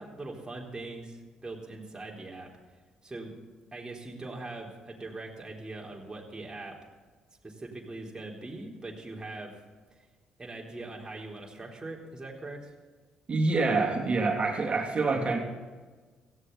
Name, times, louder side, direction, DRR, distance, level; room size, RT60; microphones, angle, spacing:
voice 1, 0.0-2.5 3.0-3.3 3.7-6.8 7.4-9.5 10.4-12.7, right 2 dB, 20° right, -2 dB, 4.0 m, -41 dB
voice 2, 13.3-15.4, right 3 dB, 35° right, 1 dB, 3.2 m, -26 dB
17.0 x 15.0 x 4.2 m, 1.4 s
hypercardioid pair, 45°, 3 cm